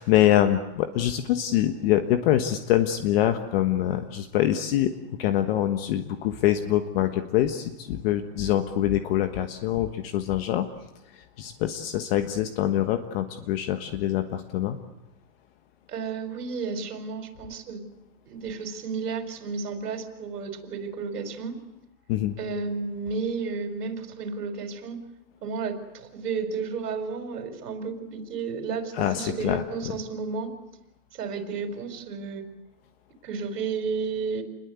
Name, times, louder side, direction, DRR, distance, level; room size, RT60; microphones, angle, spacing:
voice 1, 0.0-4.9 5.2-10.7 11.1-14.8 22.1-22.4 29.0-29.6, left 12 dB, 40° left, 8 dB, 1.4 m, -24 dB
voice 2, 15.9-17.9 18.3-21.6 22.4-25.0 25.4-30.5 31.1-32.5 33.2-34.4, right 5 dB, 85° right, 8 dB, 5.1 m, -32 dB
29.0 x 21.5 x 8.3 m, 0.95 s
supercardioid pair, 170°, 46 cm